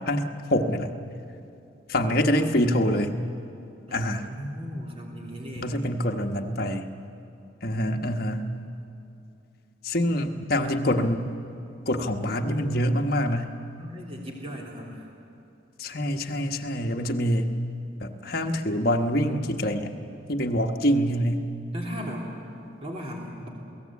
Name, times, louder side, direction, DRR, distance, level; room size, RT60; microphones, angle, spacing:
voice 1, 0.1-0.9 1.9-3.2 3.9-4.3 5.6-6.9 7.6-8.6 9.8-11.3 11.9-13.6 15.8-17.6 18.0-20.0 20.3-21.5, equal, 50° left, 3 dB, 1.3 m, -25 dB
voice 2, 3.9-5.8 13.8-15.1 21.7-22.3 22.8-23.5, equal, 30° right, -1 dB, 3.0 m, -37 dB
28.0 x 18.0 x 8.5 m, 2.7 s
head